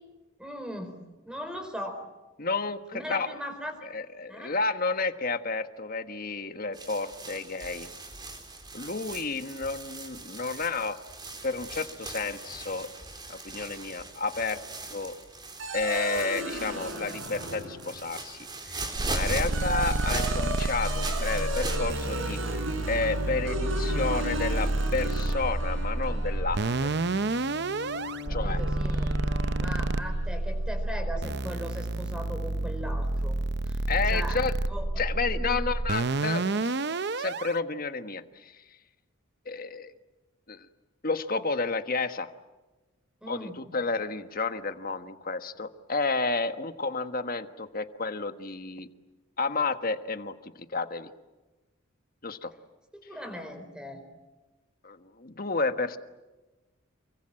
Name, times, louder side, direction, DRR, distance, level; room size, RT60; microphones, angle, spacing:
voice 1, 0.4-0.9 1.3-2.1 2.9-3.9 4.3-4.6 28.2-29.1 29.6-33.4 33.7-34.4 34.7-34.9 35.3-35.7 43.2-43.6 52.9-54.0, equal, 5° right, 6 dB, 4.5 m, -39 dB
voice 2, 2.4-3.3 3.8-7.9 8.7-11.0 11.4-12.9 13.3-14.6 14.9-15.1 15.7-26.9 28.3-28.6 33.9-34.5 35.0-36.7 37.2-38.6 39.4-39.9 40.5-40.7 41.0-42.3 43.3-48.9 49.4-50.3 50.7-51.1 52.2-52.5 54.8-56.0, left 3 dB, 45° left, 9 dB, 1.4 m, -31 dB
sound 1, 6.7-21.8, right 3 dB, 20° right, 4.1 m, -40 dB
sound 2, 15.6-18.2 19.2-30.4, equal, 70° right, 5.0 m, -35 dB
sound 3, 19.0-37.5, right 2 dB, 55° right, 0.8 m, -29 dB
29.0 x 24.0 x 7.6 m, 1.1 s
head